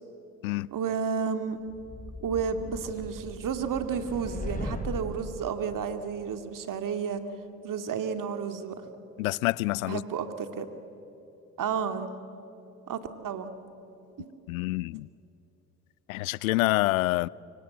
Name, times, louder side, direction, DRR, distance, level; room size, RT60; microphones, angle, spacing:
voice 1, 0.7-1.6 2.2-7.2 7.6-8.8 9.9-10.7 11.6-12.1 12.9-13.5 14.2-14.3, right 6 dB, 50° right, 2.4 m, -31 dB
sound 1, 1.7-5.4, left 1 dB, 20° left, 4.4 m, -38 dB
voice 2, 9.2-10.0 14.5-15.1 16.1-17.3, left 20 dB, 90° left, 0.5 m, -27 dB
25.5 x 24.0 x 7.8 m
hypercardioid pair, 60°, 40 cm